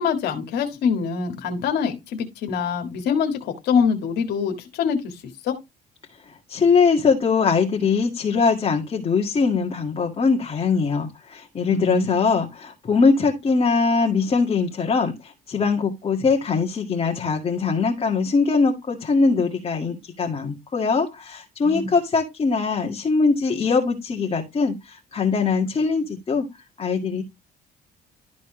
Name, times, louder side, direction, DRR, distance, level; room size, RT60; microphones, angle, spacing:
voice 1, 0.0-5.6 11.7-12.2 21.6-21.9, left 6 dB, 80° left, 1.7 m, -24 dB
voice 2, 6.5-26.4 26.8-27.2, left 4 dB, 35° left, 1.9 m, -22 dB
12.5 x 4.2 x 3.8 m
cardioid pair, 110°, 17 cm